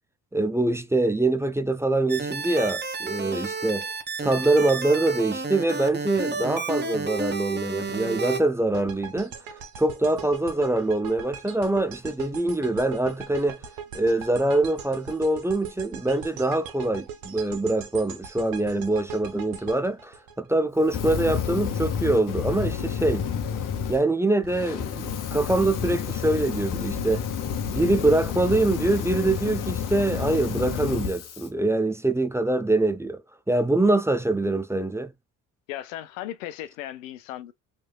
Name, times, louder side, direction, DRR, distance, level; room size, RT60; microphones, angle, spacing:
voice 1, 0.3-3.9 4.2-9.3 9.8-13.6 13.9-23.3 23.9-27.3 27.7-33.2 33.5-35.1, right 2 dB, 5° right, 0.5 m, -24 dB
sound 1, 2.1-8.4, right 4 dB, 25° right, 1.0 m, -31 dB
sound 2, 8.7-20.9, right 7 dB, 65° right, 1.0 m, -40 dB
Fire, 20.8-24.0 24.4-31.5, left 7 dB, 55° left, 0.9 m, -30 dB
voice 2, 35.7-37.5, left 13 dB, 90° left, 0.5 m, -36 dB
3.4 x 3.1 x 2.2 m
hypercardioid pair, 55°, 38 cm